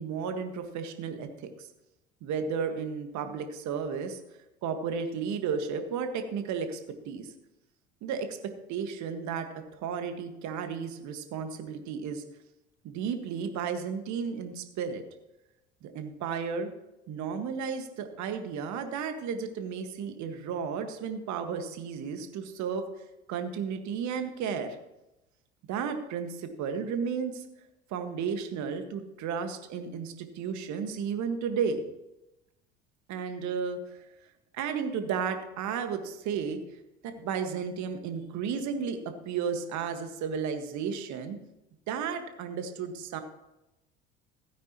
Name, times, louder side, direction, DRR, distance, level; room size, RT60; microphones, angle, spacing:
voice 1, 0.0-1.7 2.2-4.2 4.6-6.8 7.1-7.3 8.0-12.2 12.8-15.0 15.8-16.7 17.1-22.9 23.3-24.8 25.7-27.4 27.9-31.8 33.1-34.0 34.5-36.6 37.0-39.0 39.2-41.4 41.9-43.2, right 6 dB, 55° right, 7 dB, 1.8 m, -33 dB
16.0 x 9.5 x 3.0 m, 0.93 s
figure-of-eight pair, 65°, 35 cm